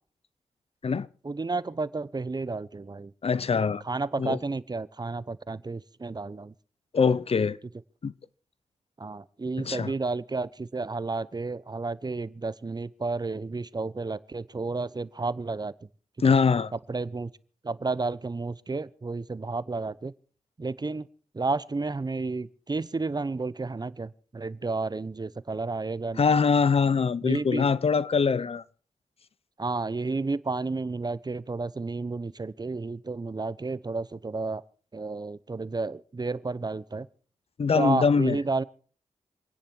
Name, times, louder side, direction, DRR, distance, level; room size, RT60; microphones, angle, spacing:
voice 1, 1.2-3.1 3.8-6.5 9.0-15.7 16.9-17.3 17.6-20.1 20.6-21.1 21.3-26.2 27.2-27.6 29.6-34.6 34.9-37.1 37.7-38.6, right 3 dB, 35° right, 0.8 m, -31 dB
voice 2, 3.2-3.8 4.2-4.4 6.9-7.6 8.0-8.1 9.6-9.9 16.2-16.7 26.2-28.6 37.6-38.4, left 5 dB, 50° left, 0.7 m, -23 dB
26.5 x 10.0 x 4.6 m
cardioid pair, 50°, 13 cm